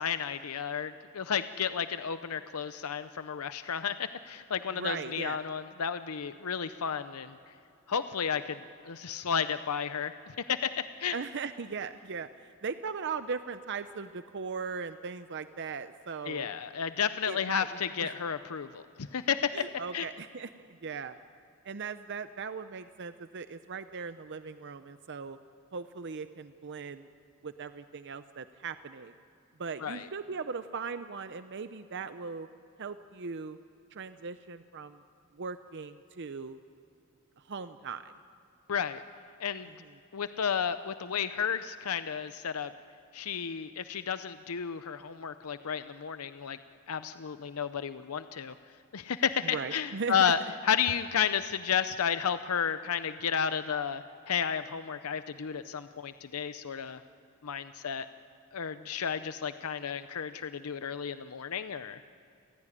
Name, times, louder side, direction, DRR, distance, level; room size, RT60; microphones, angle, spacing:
voice 1, 0.0-7.4 7.9-11.2 16.3-19.6 19.9-20.1 29.8-30.1 38.7-39.0 39.4-39.7 40.1-42.7 43.1-46.6 46.9-48.5 48.9-57.0 57.4-58.1 58.5-62.0, left 7 dB, 90° left, 11 dB, 0.7 m, -32 dB
voice 2, 4.7-5.4 11.1-16.5 17.3-17.7 18.0-18.1 19.5-21.2 21.6-25.4 25.7-27.1 27.4-29.1 29.6-32.5 32.8-33.6 33.9-35.0 35.3-36.6 37.4-38.1 49.4-50.2, right 5 dB, 55° right, 11 dB, 0.7 m, -39 dB
29.0 x 16.0 x 9.9 m, 2.7 s
head